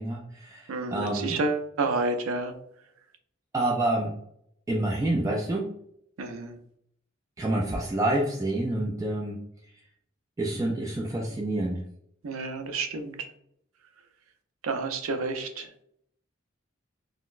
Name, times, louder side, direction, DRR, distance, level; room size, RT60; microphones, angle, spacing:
voice 1, 0.0-1.4 3.5-4.2 4.7-5.7 7.4-9.4 10.4-11.8, right 1 dB, 15° right, -1 dB, 0.3 m, -28 dB
voice 2, 0.7-2.5 6.2-6.5 12.2-13.2 14.6-15.7, right 3 dB, 85° right, 6 dB, 0.5 m, -30 dB
3.9 x 2.1 x 2.4 m, 0.70 s
head